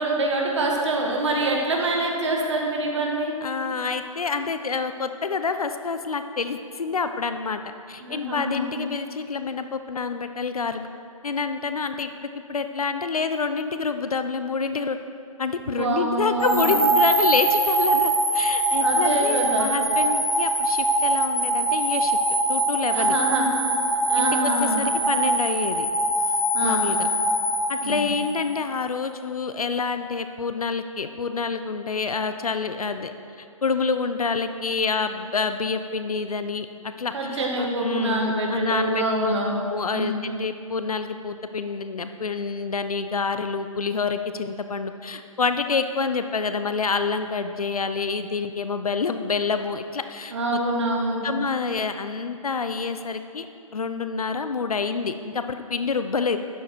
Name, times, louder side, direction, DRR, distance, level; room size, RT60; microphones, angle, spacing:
voice 1, 0.0-3.4 8.0-8.6 15.7-16.8 18.8-19.7 22.9-23.5 24.1-24.8 26.5-26.9 27.8-28.1 37.1-39.6 39.9-40.2 50.3-51.2, right 2 dB, 50° right, -1 dB, 1.9 m, -25 dB
voice 2, 3.4-7.6 7.9-10.9 11.2-15.0 15.4-22.2 22.5-23.2 24.2-25.9 26.6-27.1 27.7-33.1 33.4-39.3 39.7-50.6 51.2-53.5 53.7-56.4, left 4 dB, 80° left, 9 dB, 0.7 m, -27 dB
sound 1, 16.4-28.6, right 2 dB, ahead, 0.9 m, -23 dB
12.0 x 7.1 x 4.5 m, 2.5 s
figure-of-eight pair, 150°, 18 cm